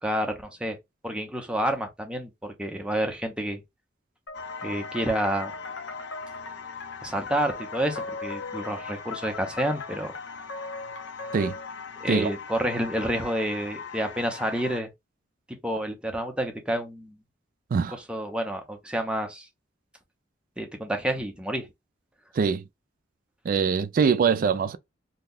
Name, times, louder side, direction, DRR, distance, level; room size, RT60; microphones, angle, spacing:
voice 1, 0.0-0.8 1.0-3.6 4.6-5.5 7.0-10.1 12.0-14.9 15.6-17.2 17.9-19.5 20.6-21.7, right 1 dB, 5° right, 0.6 m, -29 dB
sound 1, 4.3-11.7, left 3 dB, 85° left, 0.8 m, -40 dB
sound 2, 4.3-14.8, left 6 dB, 65° left, 0.4 m, -41 dB
voice 2, 23.4-24.8, right 6 dB, 45° right, 0.3 m, -23 dB
2.7 x 2.3 x 3.7 m
head